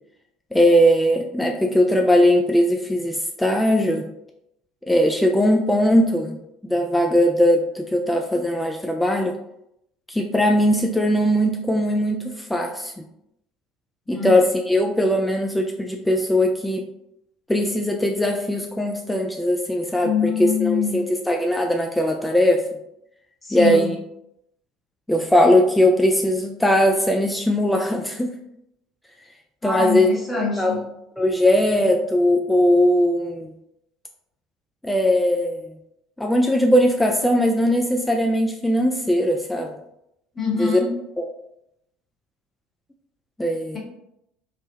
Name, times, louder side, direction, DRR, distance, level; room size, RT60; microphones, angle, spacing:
voice 1, 0.5-4.1 4.9-6.4 6.7-9.3 10.1-12.9 14.1-16.8 17.5-22.6 23.5-24.0 25.1-28.3 29.6-30.1 30.6-30.8 31.2-33.5 34.8-35.7 36.2-39.7 40.6-40.8 41.2-41.3 43.4-43.8, equal, 5° left, 2 dB, 0.3 m, -19 dB
voice 2, 20.0-21.0 23.4-23.9 29.6-30.8 40.3-40.9, left 6 dB, 25° left, -3 dB, 1.3 m, -24 dB
3.3 x 2.1 x 2.8 m, 0.81 s
figure-of-eight pair, 65°, 0 cm